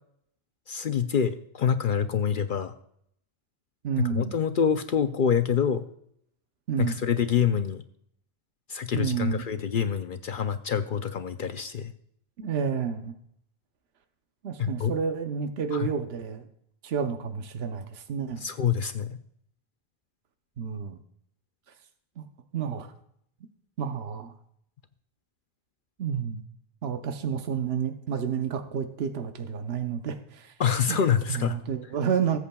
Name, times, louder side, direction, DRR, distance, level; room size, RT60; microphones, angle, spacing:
voice 1, 0.7-2.7 4.0-5.9 6.8-7.8 8.7-11.9 14.6-15.0 15.7-15.9 18.4-19.2 30.6-31.6, left 7 dB, 60° left, 9 dB, 0.7 m, -26 dB
voice 2, 3.8-4.3 6.7-7.0 8.9-9.5 12.4-13.1 14.4-16.4 16.8-18.4 20.6-21.0 22.2-22.3 22.5-22.9 23.8-24.3 26.0-26.4 26.8-30.5 30.9-31.0 31.3-32.4, right 7 dB, 75° right, 6 dB, 1.0 m, -30 dB
19.5 x 8.4 x 2.3 m, 0.70 s
omnidirectional pair, 1.1 m